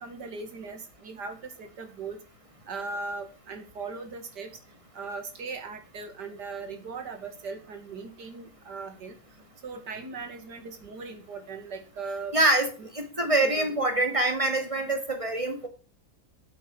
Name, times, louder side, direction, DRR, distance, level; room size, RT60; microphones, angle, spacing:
voice 1, 0.0-2.2 2.7-4.5 4.9-9.1 9.6-12.4 12.8-12.9 13.2-13.7, right 4 dB, 80° right, 7 dB, 2.6 m, -39 dB
voice 2, 12.3-12.7 12.9-15.7, right 2 dB, 20° right, 5 dB, 2.3 m, -25 dB
8.3 x 8.2 x 7.1 m, 0.34 s
omnidirectional pair, 1.8 m